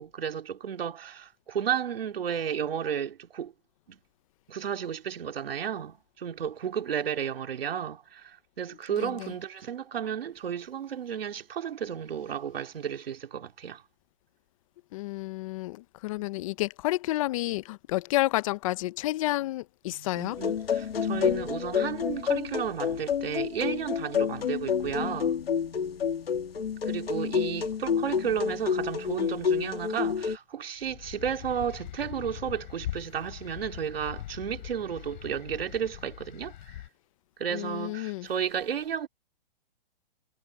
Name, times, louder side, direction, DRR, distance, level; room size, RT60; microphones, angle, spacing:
voice 1, 0.0-3.5 3.9-4.0 4.5-13.8 19.9-25.3 26.8-36.5 37.4-39.1, right 8 dB, 80° right, 3.0 m, -33 dB
voice 2, 9.0-9.3 14.9-20.4 37.5-38.3, left 17 dB, 35° left, 0.7 m, -30 dB
sound 1, 20.3-30.4, left 7 dB, 90° left, 2.5 m, -29 dB
sound 2, 30.8-36.9, left 13 dB, 55° left, 5.6 m, -42 dB
hypercardioid pair, 145°, 29 cm